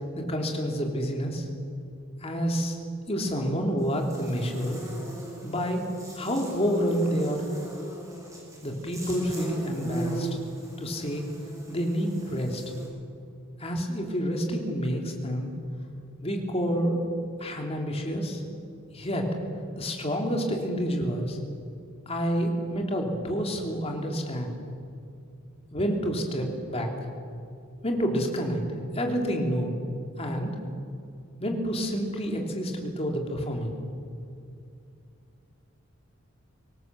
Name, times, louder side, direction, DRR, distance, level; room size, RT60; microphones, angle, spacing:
voice 1, 0.1-1.5 2.2-2.8 3.1-4.8 5.4-5.8 6.1-7.4 8.6-10.3 10.8-11.2 11.7-12.6 13.6-15.5 16.2-17.0 17.4-18.4 18.9-19.3 19.8-21.4 22.1-24.5 25.7-26.9 27.8-28.6 28.9-29.7 30.2-30.5 31.4-33.7, equal, 30° left, 2 dB, 3.2 m, -28 dB
Buzz, 3.8-12.9, right 1 dB, 15° right, 7.2 m, -39 dB
24.5 x 18.0 x 7.7 m, 2.5 s
head